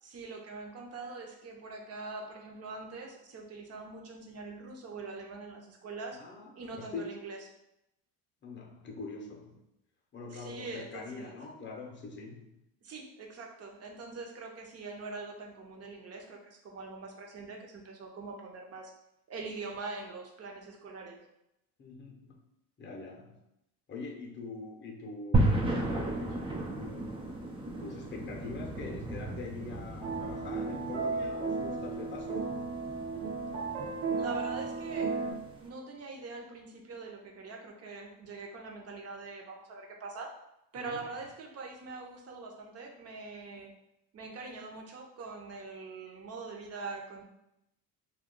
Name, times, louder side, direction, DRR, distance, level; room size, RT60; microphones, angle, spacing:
voice 1, 0.0-6.2 6.5-7.4 10.3-11.4 12.8-18.9 19.3-21.3 34.1-35.2 35.6-40.3 40.7-43.7 44.1-47.2, right 3 dB, 35° right, 2 dB, 0.7 m, -43 dB
voice 2, 6.1-7.1 8.4-9.6 10.1-12.5 21.8-22.4 22.8-23.4 23.9-25.6 25.9-26.4 26.7-27.1 27.8-32.5 40.8-41.0, left 4 dB, 25° left, 1 dB, 0.7 m, -43 dB
sound 1, 25.3-35.6, right 1 dB, 15° right, 0.3 m, -34 dB
sound 2, 30.0-35.3, right 4 dB, 70° right, 1.0 m, -34 dB
2.3 x 2.3 x 3.7 m, 0.84 s
supercardioid pair, 95°, 42 cm